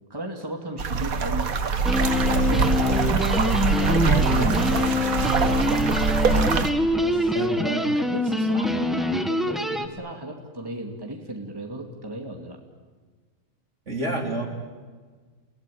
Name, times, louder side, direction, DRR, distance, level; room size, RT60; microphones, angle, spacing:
voice 1, 0.1-1.5 2.2-3.3 3.8-5.9 7.0-12.6, right 1 dB, 15° right, 2 dB, 2.6 m, -36 dB
sound 1, 0.8-6.7, right 5 dB, 85° right, 1.8 m, -23 dB
sound 2, 1.8-9.9, left 1 dB, ahead, 1.5 m, -24 dB
voice 2, 4.0-4.5 7.3-8.0 13.9-14.5, right 2 dB, 55° right, 2 dB, 3.8 m, -29 dB
29.5 x 18.5 x 10.0 m, 1.5 s
omnidirectional pair, 1.4 m